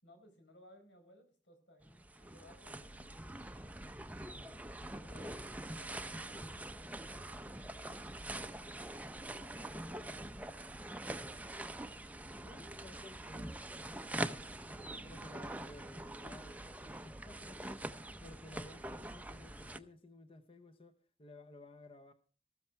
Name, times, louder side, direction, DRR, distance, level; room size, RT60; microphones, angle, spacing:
voice 1, 0.0-4.0 4.9-10.4 12.4-12.7, left 1 dB, 85° left, 4.8 m, -63 dB
sound 1, 1.8-19.8, right 1 dB, 10° right, 0.6 m, -44 dB
voice 2, 4.0-4.4 11.2-11.8 12.8-13.6 14.2-22.1, left 2 dB, 30° left, 0.8 m, -56 dB
14.0 x 13.5 x 4.5 m
head